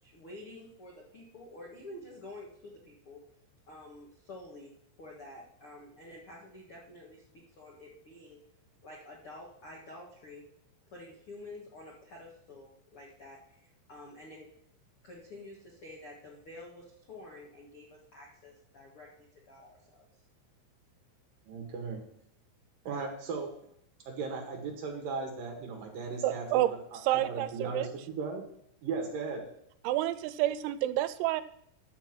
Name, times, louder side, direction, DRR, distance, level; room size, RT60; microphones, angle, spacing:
voice 1, 0.0-3.2 3.7-8.4 8.8-10.4 10.9-14.5 15.0-20.1, left 2 dB, 80° left, -3 dB, 1.2 m, -49 dB
voice 2, 21.5-22.0 22.8-23.5 24.1-26.6 27.1-28.4 28.8-29.4, right 4 dB, 60° right, 2 dB, 2.6 m, -36 dB
voice 3, 26.2-27.9 29.8-31.4, right 14 dB, 85° right, 13 dB, 3.3 m, -29 dB
11.0 x 7.1 x 6.0 m, 0.70 s
omnidirectional pair, 5.9 m